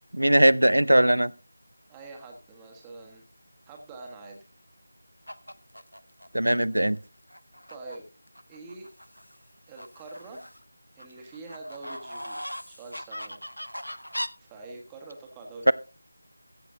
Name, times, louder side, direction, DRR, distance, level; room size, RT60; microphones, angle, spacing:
voice 1, 0.1-1.3 6.3-7.0 15.7-15.8, right 1 dB, 75° right, 0.6 m, -20 dB
voice 2, 1.9-3.2 3.7-4.4 7.7-8.1 8.5-8.9 9.7-10.4 10.9-13.4 14.4-15.7, right 3 dB, 10° right, 1.4 m, -44 dB
sound 1, 5.3-6.3 6.9-7.0 7.3-8.0 8.3-9.4 9.8-10.6 11.0-14.3, equal, 90° left, 0.9 m, -39 dB
15.0 x 6.7 x 3.9 m
figure-of-eight pair, 165°, 0 cm